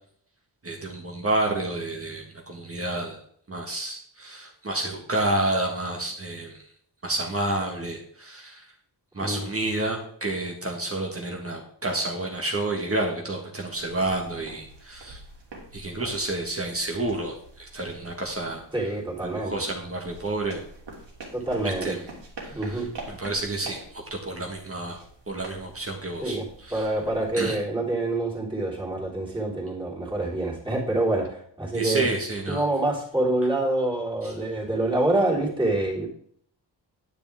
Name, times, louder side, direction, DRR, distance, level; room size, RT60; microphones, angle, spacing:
voice 1, 0.6-3.2 3.5-6.6 7.0-8.7 9.1-15.2 15.7-18.6 19.2-20.6 21.6-22.0 22.4-25.0 25.3-26.9 27.3-27.6 31.7-32.6 34.2-34.3, right 2 dB, 30° right, 0 dB, 1.6 m, -30 dB
sound 1, 13.8-27.5, right 2 dB, 75° right, 3.1 m, -45 dB
voice 2, 18.7-19.5 21.3-22.0 22.5-22.9 26.2-32.1 32.5-36.1, right 2 dB, 10° right, -5 dB, 3.4 m, -26 dB
10.0 x 9.9 x 3.6 m, 0.62 s
wide cardioid pair, 175°, 43 cm